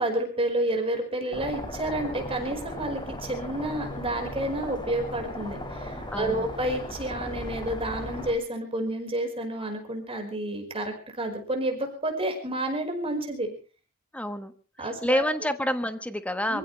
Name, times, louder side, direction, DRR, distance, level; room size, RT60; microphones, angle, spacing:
voice 1, 0.0-13.5 14.8-15.3 16.5-16.6, right 1 dB, 25° right, 3 dB, 5.1 m, -30 dB
sound 1, 1.3-8.3, left 1 dB, 20° left, 2.8 m, -37 dB
voice 2, 6.1-6.5 14.1-14.5 14.8-16.6, left 1 dB, 5° left, 9 dB, 1.3 m, -28 dB
26.5 x 16.0 x 3.4 m, 0.38 s
head